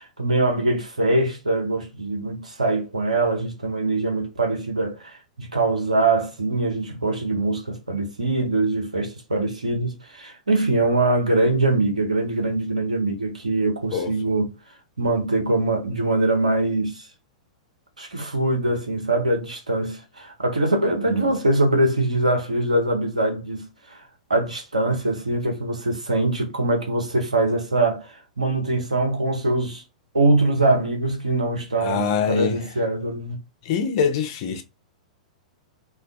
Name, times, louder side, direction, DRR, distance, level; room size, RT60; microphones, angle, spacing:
voice 1, 0.0-14.5 15.0-17.1 18.0-24.0 24.3-29.8 30.1-33.4, right 2 dB, 80° right, 0.8 m, -23 dB
voice 2, 31.8-32.6 33.7-34.6, left 6 dB, 45° left, 0.5 m, -24 dB
2.3 x 2.2 x 2.4 m
figure-of-eight pair, 100°, 4 cm